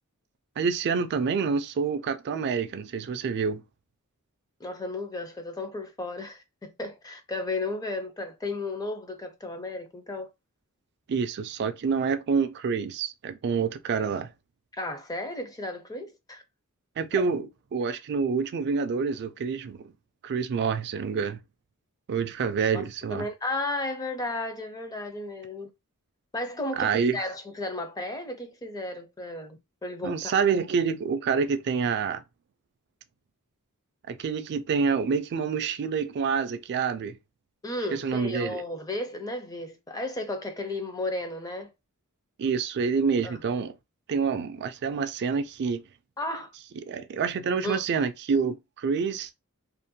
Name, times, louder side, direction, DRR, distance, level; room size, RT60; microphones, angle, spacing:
voice 1, 0.6-3.6 11.1-14.3 17.0-19.9 20.2-21.4 22.1-23.3 26.8-27.2 30.0-32.2 34.1-37.2 37.9-38.6 42.4-43.8 44.1-45.8 46.8-49.3, right 5 dB, 50° right, 0.3 m, -27 dB
voice 2, 4.6-10.3 14.7-16.4 17.1-17.2 17.9-18.0 22.7-22.8 23.1-25.7 26.3-30.3 37.6-41.7 43.2-43.4 46.2-46.5 47.6-47.8, left 2 dB, 15° left, 0.4 m, -34 dB
2.5 x 2.1 x 2.6 m
head